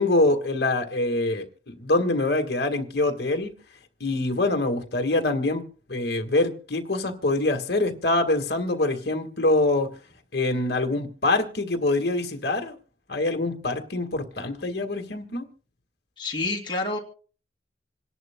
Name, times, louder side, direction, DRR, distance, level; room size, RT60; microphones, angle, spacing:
voice 1, 0.0-3.5 4.0-9.9 10.3-12.7 13.1-15.4, left 2 dB, 60° left, 1.7 m, -25 dB
voice 2, 16.2-17.0, left 2 dB, 25° left, 2.5 m, -28 dB
27.5 x 11.0 x 2.2 m
head